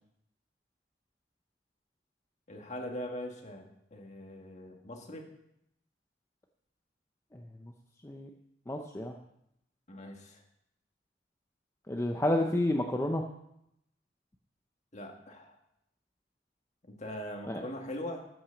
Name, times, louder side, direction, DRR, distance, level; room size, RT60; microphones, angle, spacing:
voice 1, 2.5-5.3 9.9-10.4 14.9-15.6 16.9-18.3, left 1 dB, 40° left, 3 dB, 1.8 m, -41 dB
voice 2, 8.7-9.1 11.9-13.2 17.5-17.6, left 1 dB, 15° left, 3 dB, 0.6 m, -30 dB
13.0 x 6.1 x 7.0 m, 0.79 s
head